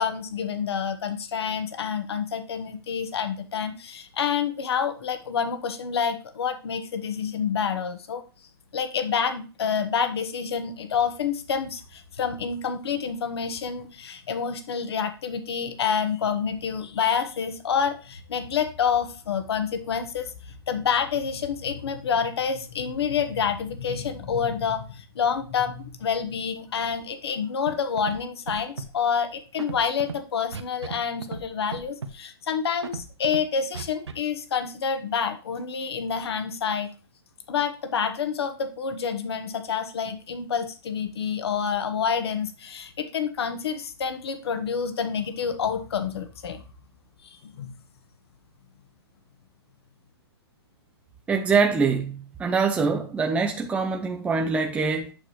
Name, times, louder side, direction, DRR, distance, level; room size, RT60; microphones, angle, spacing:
voice 1, 0.0-8.2 8.7-36.9 37.5-46.6 47.4-47.7, left 7 dB, 70° left, 1.4 m, -28 dB
Scratching (performance technique), 27.7-27.8 28.0-28.2 28.5-28.9 29.6-30.1 30.5-31.0 31.2-31.4 31.7-32.1 32.8-33.4 33.7-34.1, right 5 dB, 90° right, 1.1 m, -34 dB
voice 2, 51.3-55.1, right 5 dB, 10° right, 0.7 m, -24 dB
8.4 x 6.3 x 3.1 m
hypercardioid pair, 135°, 14 cm